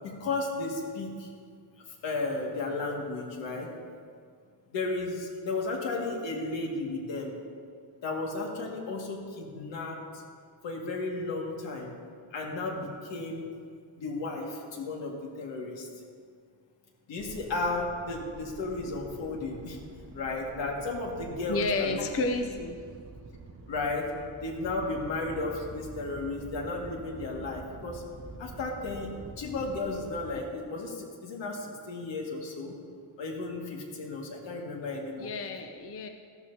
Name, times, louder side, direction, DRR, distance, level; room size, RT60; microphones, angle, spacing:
voice 1, 0.0-1.3 2.0-3.7 4.7-7.4 8.0-10.2 10.6-11.9 12.3-13.4 13.9-15.9 17.1-19.8 20.1-22.0 23.7-24.1 24.4-28.0 28.4-29.1 29.4-32.7 33.2-35.3, left 3 dB, 80° left, -1 dB, 2.2 m, -34 dB
sound 1, 17.2-30.4, right 3 dB, 30° right, 0.9 m, -47 dB
voice 2, 21.5-22.8 35.2-36.1, left 3 dB, 30° left, 5 dB, 0.6 m, -31 dB
14.5 x 12.5 x 2.8 m, 2.1 s
cardioid pair, 155°, 44 cm